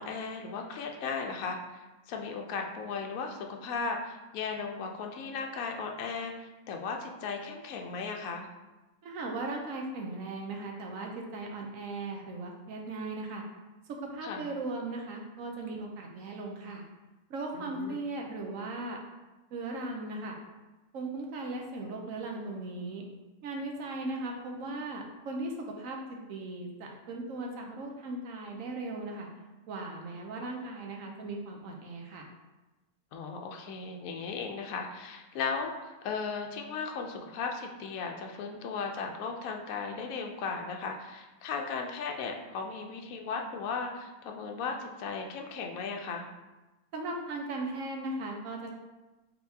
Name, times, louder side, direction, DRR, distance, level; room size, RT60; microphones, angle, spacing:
voice 1, 0.0-8.5 14.2-14.5 17.5-18.0 33.1-46.3, left 5 dB, 75° left, 2 dB, 1.0 m, -36 dB
voice 2, 9.0-13.4 13.9-16.8 17.3-19.0 19.5-20.4 20.9-23.0 23.4-29.3 29.7-32.3 46.9-48.7, right 2 dB, 70° right, 1 dB, 1.0 m, -38 dB
4.3 x 3.8 x 2.7 m, 1.1 s
omnidirectional pair, 1.5 m